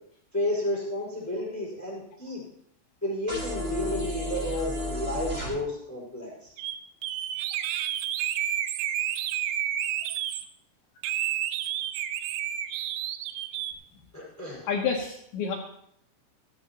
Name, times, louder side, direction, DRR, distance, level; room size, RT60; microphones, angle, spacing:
voice 1, 0.3-2.4 3.0-6.5 14.1-14.6, left 1 dB, 5° left, -4 dB, 4.3 m, -32 dB
sound 1, 3.3-5.5, left 1 dB, 15° right, 4.3 m, -32 dB
sound 2, 6.6-6.8 7.0-10.4 11.0-13.7, right 11 dB, 85° right, 3.4 m, -30 dB
voice 2, 14.7-15.5, left 6 dB, 70° left, -1 dB, 3.1 m, -28 dB
16.0 x 13.5 x 3.0 m, 0.69 s
omnidirectional pair, 5.9 m